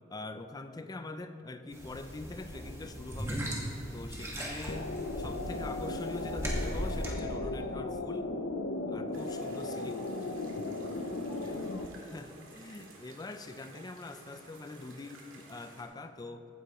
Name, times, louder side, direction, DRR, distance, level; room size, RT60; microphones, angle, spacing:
voice 1, 0.1-3.5 3.9-8.3 8.9-9.9 11.4-11.6 12.0-16.5, left 2 dB, 20° left, 9 dB, 0.4 m, -44 dB
sound 1, 1.7-7.1, equal, 15° right, 1.6 m, -38 dB
sound 2, 4.7-11.9, left 2 dB, 70° left, 0.6 m, -36 dB
sound 3, 9.1-15.8, right 2 dB, 85° right, 1.9 m, -54 dB
15.0 x 9.4 x 3.0 m, 3.0 s
head